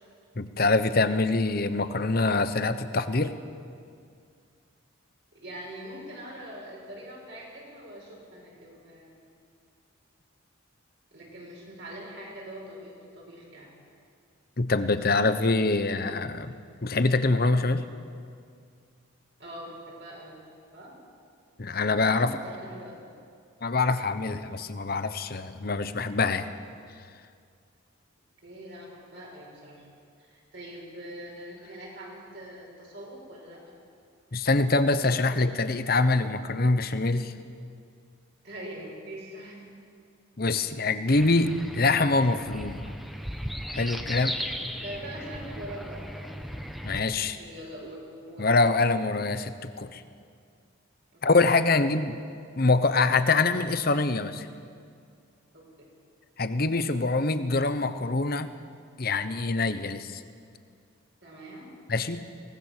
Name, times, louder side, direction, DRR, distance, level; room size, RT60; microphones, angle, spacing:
voice 1, 0.4-3.3 14.6-16.5 16.8-17.8 21.6-22.3 23.6-26.5 34.3-37.3 40.4-42.8 43.7-44.4 46.8-47.4 48.4-50.0 51.2-52.2 52.6-54.5 56.4-58.5 59.0-60.2 61.9-62.3, left 3 dB, 45° left, 11 dB, 0.9 m, -24 dB
voice 2, 5.3-9.2 11.1-13.7 19.4-20.3 20.7-20.9 22.0-23.0 28.4-29.9 30.2-33.6 38.4-39.7 40.8-40.9 44.2-44.6 44.8-46.3 47.4-48.6 51.1-51.5 55.5-55.9 61.2-61.7, right 1 dB, 55° right, -3 dB, 6.1 m, -43 dB
sound 1, 41.1-47.0, equal, ahead, 0.9 m, -36 dB
23.0 x 18.0 x 6.7 m, 2.3 s
head